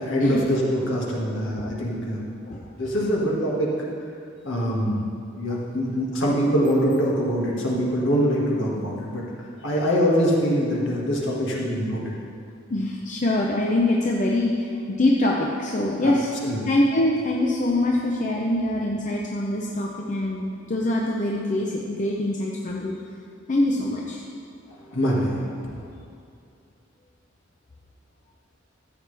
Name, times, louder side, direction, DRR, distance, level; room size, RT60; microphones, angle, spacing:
voice 1, 0.0-2.3 2.8-3.7 4.4-5.0 5.3-9.3 9.6-12.1 16.0-16.1 16.4-16.6 24.7-25.5, equal, 65° left, -4 dB, 2.0 m, -24 dB
voice 2, 12.7-16.3 16.7-22.9 23.5-24.2, left 1 dB, 40° left, -2 dB, 0.7 m, -24 dB
13.5 x 7.9 x 3.4 m, 2.3 s
head